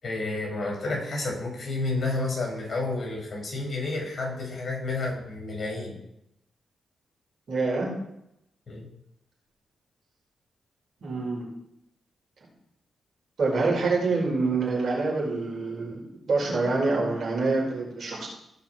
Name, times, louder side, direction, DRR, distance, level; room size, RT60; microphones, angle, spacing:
voice 1, 0.0-6.0 8.7-8.9, left 2 dB, 50° left, -1 dB, 5.3 m, -30 dB
voice 2, 7.5-7.9 11.0-11.5 13.4-18.3, right 3 dB, 70° right, -3 dB, 5.4 m, -26 dB
17.0 x 6.0 x 4.6 m, 0.81 s
supercardioid pair, 45°, 0 cm